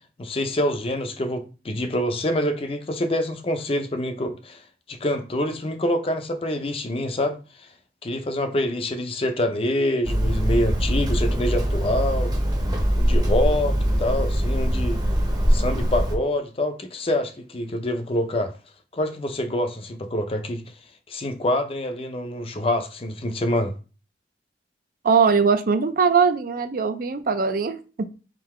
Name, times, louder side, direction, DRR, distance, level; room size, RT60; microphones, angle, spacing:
voice 1, 0.2-4.6 4.9-7.4 8.0-12.3 13.0-15.0 15.5-18.5 18.9-20.6 21.1-23.7, left 1 dB, 35° left, 0.5 m, -26 dB
Hammer, 10.0-16.1, equal, 25° right, 0.8 m, -22 dB
voice 2, 25.0-28.1, right 5 dB, 55° right, 0.4 m, -21 dB
3.8 x 2.7 x 4.3 m
head